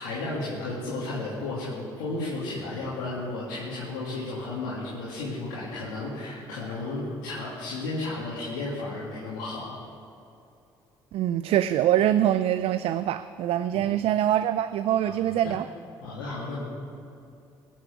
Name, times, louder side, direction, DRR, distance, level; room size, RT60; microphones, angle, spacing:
voice 1, 0.0-9.8 13.7-13.8 15.0-15.1 15.4-15.5 16.0-16.6, left 2 dB, 90° left, -8 dB, 2.5 m, -33 dB
voice 2, 11.1-15.7, right 11 dB, 70° right, 12 dB, 0.4 m, -24 dB
17.5 x 7.4 x 7.0 m, 2.6 s
supercardioid pair, 60°, 11 cm